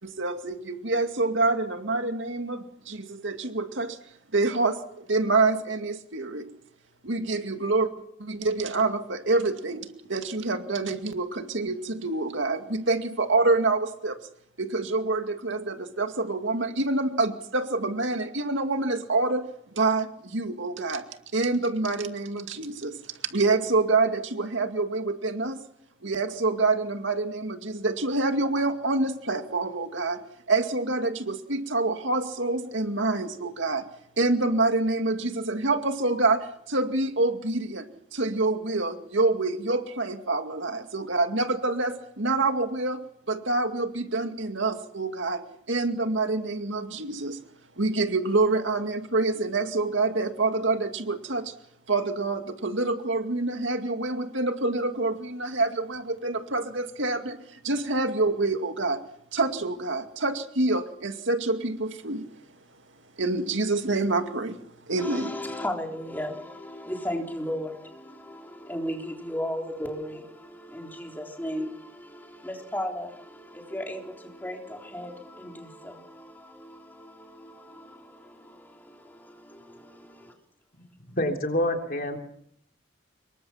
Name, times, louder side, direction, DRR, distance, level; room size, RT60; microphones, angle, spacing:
voice 1, 0.0-4.0 4.3-6.5 7.0-7.9 8.2-14.2 14.6-19.5 19.7-21.0 21.3-25.6 26.0-30.2 30.5-33.9 34.2-43.0 43.3-47.4 47.8-51.5 51.9-59.0 59.3-62.3 63.2-64.6 64.9-65.3, right 3 dB, 75° right, 2.3 m, -27 dB
voice 2, 65.0-80.3, equal, 10° left, 3.7 m, -36 dB
voice 3, 81.1-82.2, left 1 dB, 45° left, 3.5 m, -27 dB
26.5 x 22.5 x 5.8 m
head